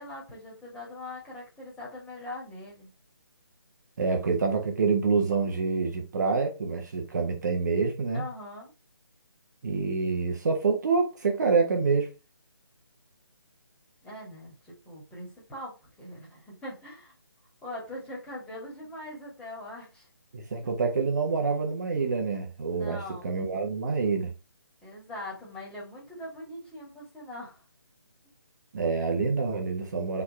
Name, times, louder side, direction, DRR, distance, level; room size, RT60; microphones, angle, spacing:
voice 1, 0.0-2.9 8.1-8.7 14.0-17.1 17.6-20.1 22.7-23.3 24.8-27.6, left 1 dB, 5° left, 2.3 m, -41 dB
voice 2, 4.0-8.2 9.6-12.1 20.3-24.3 28.7-30.2, right 4 dB, 45° right, 1.4 m, -27 dB
4.6 x 4.2 x 5.0 m
figure-of-eight pair, 150°, 13 cm